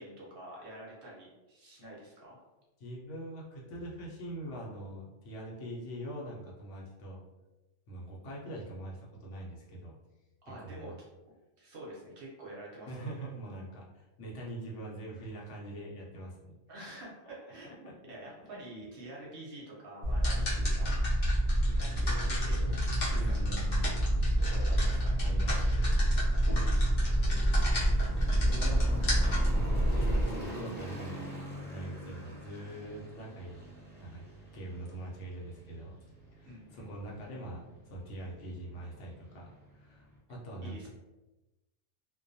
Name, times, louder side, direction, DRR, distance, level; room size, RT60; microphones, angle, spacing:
voice 1, 0.0-2.4 10.5-10.9 11.6-13.2 16.7-20.9 21.6-23.6 24.0-25.2 27.8-28.1 36.5-36.9 40.6-40.9, right 1 dB, 55° right, -4 dB, 0.7 m, -47 dB
voice 2, 2.8-7.2 7.9-9.9 10.6-11.0 12.9-16.6 17.8-17.9 18.4-18.6 20.2-20.6 23.1-24.0 25.2-26.0 27.7-29.0 29.5-31.3 31.7-33.7 34.0-34.3 34.5-36.0 36.3-40.9, right 1 dB, 75° left, -3 dB, 0.9 m, -43 dB
sound 1, 20.0-30.3, equal, 45° left, 0.7 m, -27 dB
sound 2, 21.1-40.2, right 1 dB, 10° left, 0.9 m, -47 dB
2.2 x 2.1 x 2.6 m, 1.1 s
omnidirectional pair, 1.3 m